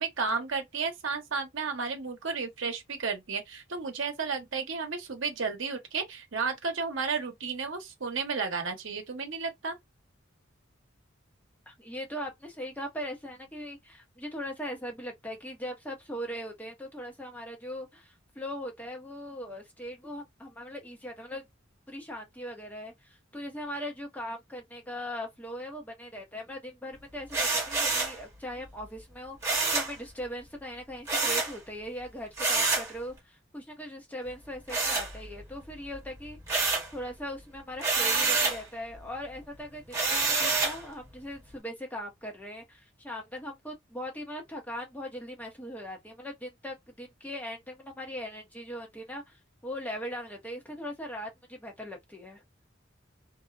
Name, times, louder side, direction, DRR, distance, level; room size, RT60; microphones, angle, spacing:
voice 1, 0.0-9.8, right 5 dB, 70° right, 0.8 m, -33 dB
voice 2, 11.7-21.4 21.9-36.4 36.9-49.4 49.6-52.4, equal, 10° left, 0.7 m, -40 dB
sound 1, 27.3-28.2 29.4-29.9 31.1-31.5 32.4-32.9 34.7-35.5 35.9-36.9 37.8-38.6 39.9-40.8, right 3 dB, 15° right, 1.0 m, -27 dB
2.5 x 2.1 x 2.4 m
head